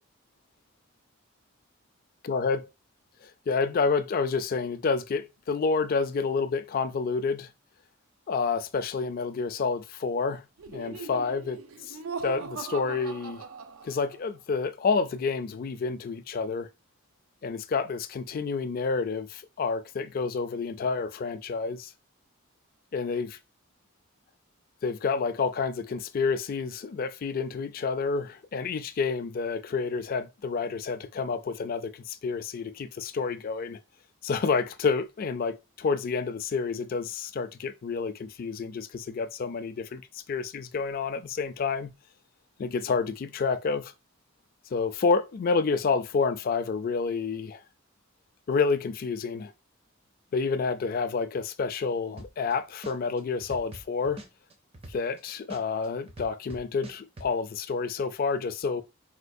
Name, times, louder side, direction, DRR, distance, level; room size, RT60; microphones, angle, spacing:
voice 1, 2.3-2.6 3.5-7.5 8.3-11.6 11.9-13.4 13.8-16.7 17.4-21.9 22.9-23.4 24.8-33.8 34.2-42.0 42.6-43.9 44.7-47.6 48.5-49.5 50.3-54.2 54.9-58.8, left 4 dB, 45° left, 0.3 m, -29 dB
Laughter, 10.6-14.3, right 5 dB, 90° right, 0.4 m, -40 dB
sound 1, 52.2-52.5 52.8-55.2 55.5-57.3, right 1 dB, 30° right, 0.5 m, -43 dB
4.3 x 2.3 x 2.5 m
head